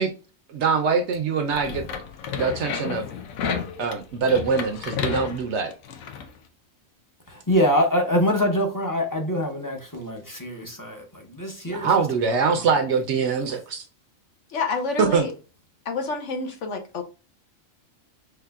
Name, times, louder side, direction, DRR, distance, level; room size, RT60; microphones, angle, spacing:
voice 1, 0.5-1.8 2.3-3.0 3.8-5.7 11.7-13.8 15.0-15.3, right 5 dB, 65° right, 0.9 m, -23 dB
sound 1, 1.5-6.3, left 7 dB, 85° left, 1.1 m, -32 dB
voice 2, 7.3-11.9, equal, 20° left, 0.7 m, -24 dB
voice 3, 14.5-15.3 15.8-17.0, left 4 dB, 65° left, 1.1 m, -28 dB
5.7 x 3.2 x 2.3 m
omnidirectional pair, 1.4 m